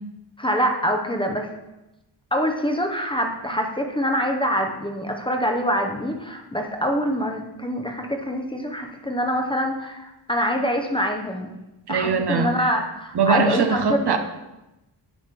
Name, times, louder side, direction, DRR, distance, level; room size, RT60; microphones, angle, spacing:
voice 1, 0.4-1.5 2.3-11.5 11.9-14.2, equal, 10° left, 3 dB, 0.8 m, -25 dB
voice 2, 11.9-12.5 13.1-14.2, right 5 dB, 65° right, 7 dB, 0.8 m, -21 dB
9.0 x 3.6 x 5.8 m, 0.96 s
wide cardioid pair, 140°, 43 cm